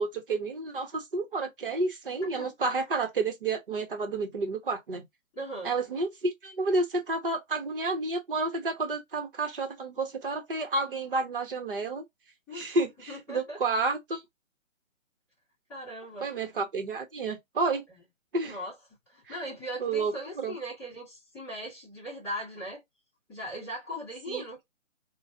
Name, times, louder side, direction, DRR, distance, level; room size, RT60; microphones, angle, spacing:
voice 1, 0.0-5.1 5.6-12.0 12.5-14.2 16.2-17.8 18.3-18.6 19.3-19.4 19.8-20.5 24.3-24.4, right 3 dB, 40° right, 1.3 m, -30 dB
voice 2, 5.3-5.8 12.5-12.8 13.1-13.6 15.7-16.3 18.4-18.7 19.1-22.8 23.3-24.6, equal, 5° left, 1.2 m, -39 dB
3.8 x 2.5 x 2.7 m
figure-of-eight pair, 160°, 40 cm